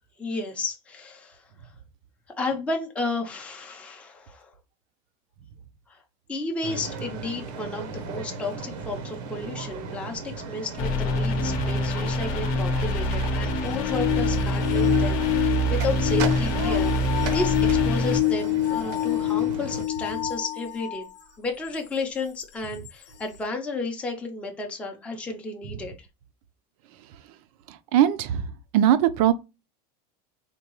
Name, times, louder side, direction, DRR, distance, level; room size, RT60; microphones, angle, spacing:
voice 1, 0.2-1.4 2.4-4.5 5.9-6.0 6.3-16.9 17.3-21.0 21.4-25.9, left 2 dB, 5° left, 0.5 m, -32 dB
sound 1, 6.6-19.8, right 4 dB, 80° right, 0.9 m, -37 dB
sound 2, 10.8-18.2, equal, 45° left, 0.7 m, -25 dB
sound 3, 13.4-21.0 21.7-21.8 22.8-22.9, left 16 dB, 85° left, 0.7 m, -26 dB
voice 2, 27.9-28.4 28.7-29.3, right 11 dB, 65° right, 0.5 m, -19 dB
3.6 x 2.3 x 3.0 m
supercardioid pair, 160°, 20 cm